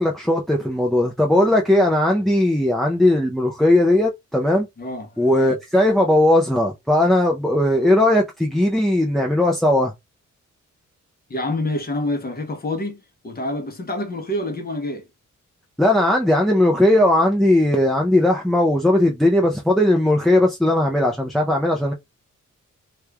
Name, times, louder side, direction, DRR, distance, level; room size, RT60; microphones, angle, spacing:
voice 1, 0.0-4.7 5.2-9.9 15.8-21.9, left 1 dB, ahead, 0.5 m, -18 dB
voice 2, 4.8-5.6 11.3-15.1, left 1 dB, 30° left, 0.8 m, -27 dB
3.0 x 2.4 x 3.3 m
wide cardioid pair, 165°, 30 cm